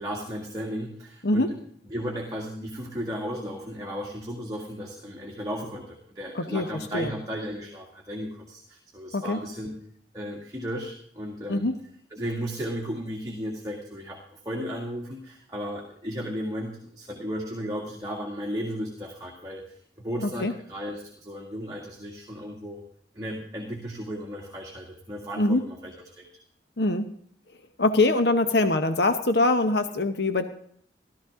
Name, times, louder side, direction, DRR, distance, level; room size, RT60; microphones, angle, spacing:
voice 1, 0.0-1.6 1.9-9.8 10.1-11.7 12.1-22.8 23.1-26.3, equal, 20° right, -1 dB, 2.1 m, -35 dB
voice 2, 1.2-1.5 6.3-7.1 9.1-9.4 11.5-11.7 20.4-20.5 25.4-25.7 26.8-27.1 27.8-30.5, left 2 dB, 70° left, 8 dB, 1.0 m, -23 dB
15.0 x 13.5 x 3.7 m, 0.62 s
head